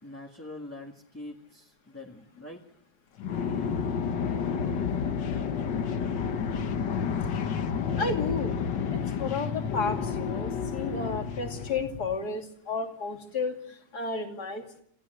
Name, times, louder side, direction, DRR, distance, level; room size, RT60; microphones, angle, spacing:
voice 1, 0.0-2.6, left 2 dB, 10° left, 0 dB, 1.8 m, -44 dB
sound 1, 3.2-12.2, left 6 dB, 75° left, 1.9 m, -30 dB
voice 2, 8.0-8.6 8.9-14.8, left 4 dB, 60° left, 3 dB, 3.2 m, -32 dB
28.0 x 15.5 x 7.9 m, 0.68 s
omnidirectional pair, 1.9 m